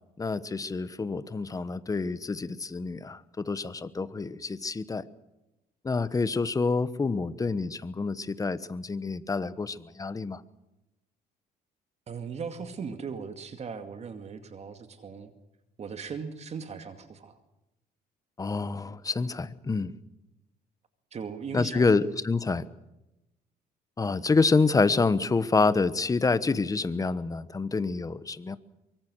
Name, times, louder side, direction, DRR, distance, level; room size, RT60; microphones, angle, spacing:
voice 1, 0.2-5.1 5.8-10.4 18.4-19.9 21.5-22.6 24.0-28.6, left 4 dB, 20° left, 14 dB, 1.2 m, -27 dB
voice 2, 12.1-15.3 15.8-17.4 21.1-22.0, right 6 dB, 40° right, 8 dB, 2.3 m, -38 dB
24.0 x 24.0 x 6.4 m, 0.95 s
cardioid pair, 110°, 17 cm